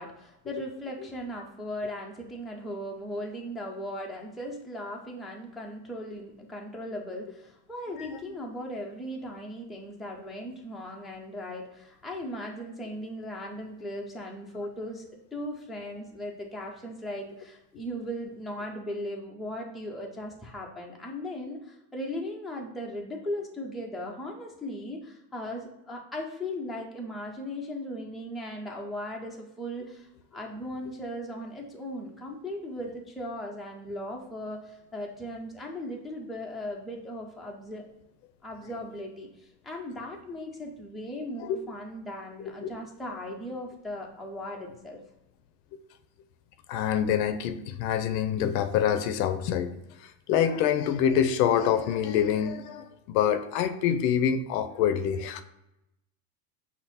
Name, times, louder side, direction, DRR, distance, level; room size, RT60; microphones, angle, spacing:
voice 1, 0.0-37.8 38.4-45.0, left 1 dB, ahead, -2 dB, 0.5 m, -38 dB
voice 2, 42.4-42.7 46.7-49.7 50.0-55.4, left 9 dB, 80° left, 10 dB, 0.7 m, -26 dB
5.9 x 2.0 x 4.0 m, 0.88 s
supercardioid pair, 120°, 49 cm